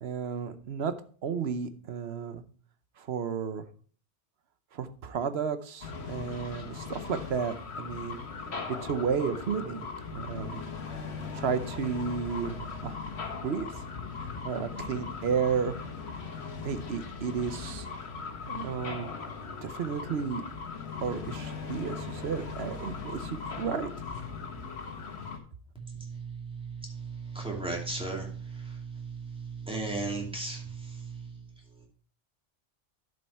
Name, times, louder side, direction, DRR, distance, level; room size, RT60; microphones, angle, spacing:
voice 1, 0.0-0.9 1.2-2.4 3.0-3.7 4.7-8.2 8.7-10.6 11.3-13.0 13.4-13.7 14.2-15.8 16.6-17.9 18.5-19.1 19.6-20.4 21.0-23.9, right 6 dB, 65° right, 11 dB, 1.1 m, -32 dB
sound 1, 5.8-25.4, left 4 dB, 65° left, 1.6 m, -39 dB
voice 2, 25.7-31.5 31.8-31.9, right 3 dB, 5° right, -1 dB, 2.5 m, -37 dB
11.5 x 5.4 x 4.3 m, 0.43 s
omnidirectional pair, 1.2 m